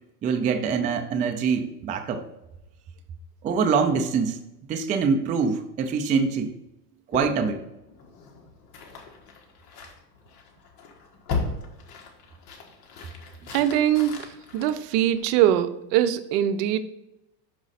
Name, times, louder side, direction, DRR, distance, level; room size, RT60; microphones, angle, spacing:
voice 1, 0.2-2.2 3.4-4.4 4.7-6.5 7.1-7.6, right 5 dB, 20° right, 6 dB, 0.3 m, -24 dB
sound 1, 7.1-15.6, left 4 dB, 45° left, 1.5 m, -37 dB
voice 2, 13.5-14.1 14.5-16.8, right 11 dB, 70° right, 12 dB, 0.7 m, -22 dB
6.2 x 5.1 x 4.1 m, 0.90 s
supercardioid pair, 120°, 49 cm